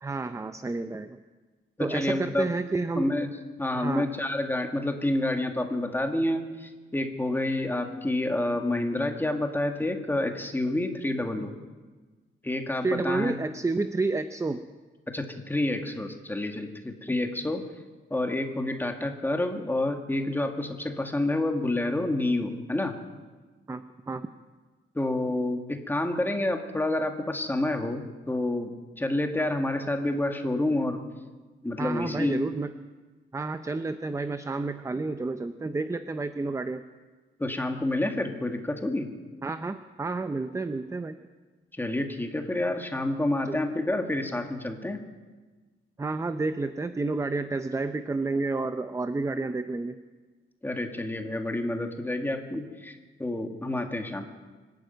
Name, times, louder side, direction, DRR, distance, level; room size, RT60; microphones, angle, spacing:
voice 1, 0.0-1.2 1.8-3.1 3.7-4.1 12.8-14.6 23.7-24.3 31.8-32.7 33.3-36.8 39.4-41.2 43.5-43.6 46.0-50.0, right 3 dB, 15° right, 10 dB, 0.6 m, -30 dB
voice 2, 1.8-2.5 3.0-3.3 3.6-11.5 12.4-13.3 15.1-17.6 18.1-23.0 25.0-28.7 29.0-31.0 31.6-32.4 37.4-39.1 41.8-45.0 50.6-54.3, left 1 dB, 10° left, 5 dB, 1.9 m, -28 dB
24.5 x 12.0 x 9.2 m, 1.3 s
wide cardioid pair, 160°, 21 cm